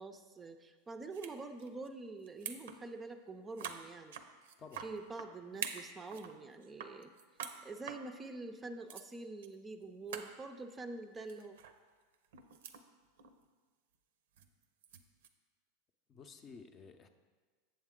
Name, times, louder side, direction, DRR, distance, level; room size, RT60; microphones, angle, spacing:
voice 1, 0.0-4.2 4.8-7.1 7.6-11.6, right 3 dB, 20° right, 7 dB, 0.5 m, -46 dB
sound 1, 1.1-1.3 1.6-1.9 2.2-2.8 3.1-3.2 3.6-5.3 5.6-6.4 6.6-7.6 7.9-8.0 8.6-8.7 8.9-9.1 9.4-9.5 9.8-9.9 10.1-10.3 11.3-11.8 12.1-12.8 13.2-13.4 14.4-15.3, right 8 dB, 80° right, 0.6 m, -45 dB
voice 2, 16.1-17.1, left 5 dB, 30° left, 7 dB, 0.6 m, -53 dB
7.5 x 7.2 x 3.7 m, 1.4 s
hypercardioid pair, 115°, 0 cm